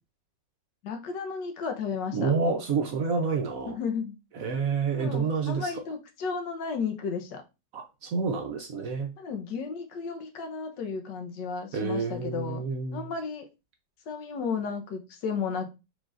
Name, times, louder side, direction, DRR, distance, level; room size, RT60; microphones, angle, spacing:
voice 1, 0.8-2.3 3.7-4.2 5.0-7.4 9.2-12.6 12.9-13.5 14.1-15.7, left 5 dB, 75° left, 4 dB, 1.5 m, -33 dB
voice 2, 2.1-3.7 4.4-5.7 7.7-9.1 11.7-13.1, right 5 dB, 65° right, 4 dB, 0.9 m, -28 dB
4.9 x 4.0 x 2.4 m, 0.27 s
omnidirectional pair, 1.9 m